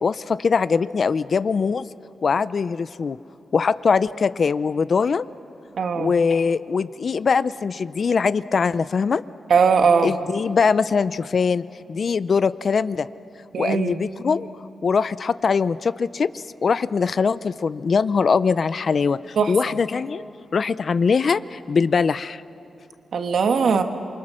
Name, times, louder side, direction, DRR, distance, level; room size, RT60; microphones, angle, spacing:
voice 1, 0.0-1.9 2.2-3.2 3.5-5.2 6.0-9.2 10.0-13.1 13.6-14.5 14.8-20.2 20.5-22.4, left 5 dB, 50° left, 16 dB, 0.5 m, -22 dB
voice 2, 5.7-6.1 9.5-10.1 13.5-14.0 19.4-19.5 23.1-23.8, right 5 dB, 70° right, 7 dB, 1.4 m, -19 dB
28.0 x 24.0 x 6.4 m, 2.7 s
wide cardioid pair, 120°, 0 cm